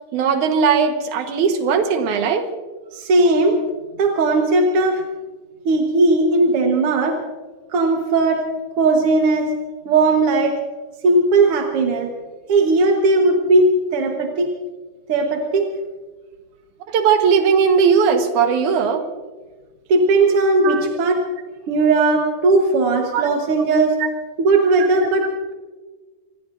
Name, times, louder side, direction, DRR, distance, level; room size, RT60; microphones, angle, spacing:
voice 1, 0.1-2.5 16.9-19.0 20.6-20.9 23.1-23.3, right 6 dB, 75° right, 6 dB, 2.8 m, -18 dB
voice 2, 2.9-3.6 4.0-5.0 5.7-7.2 7.7-8.4 8.8-9.5 9.9-10.6 11.0-12.1 12.5-14.5 15.1-15.7 19.9-21.2 21.7-24.0 24.4-25.5, right 2 dB, 55° right, 2 dB, 1.9 m, -17 dB
26.5 x 20.5 x 2.6 m, 1.3 s
omnidirectional pair, 3.5 m